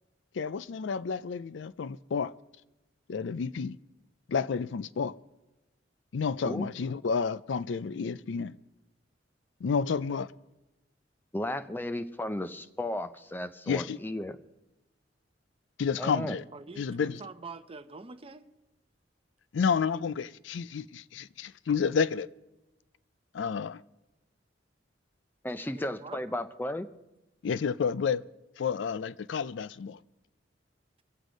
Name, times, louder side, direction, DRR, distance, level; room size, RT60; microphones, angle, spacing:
voice 1, 0.4-2.3 3.1-3.8 4.3-5.1 6.1-8.5 9.6-10.3 13.7-14.0 15.8-16.4 16.8-17.2 19.5-22.3 23.3-23.8 27.4-28.2 28.6-30.0, left 6 dB, 70° left, 0.4 m, -30 dB
voice 2, 11.3-14.4 16.0-16.4 25.4-26.9, left 1 dB, 10° left, 0.6 m, -34 dB
voice 3, 16.5-18.5 25.6-26.4, right 4 dB, 30° right, 0.7 m, -45 dB
23.0 x 8.1 x 5.1 m
head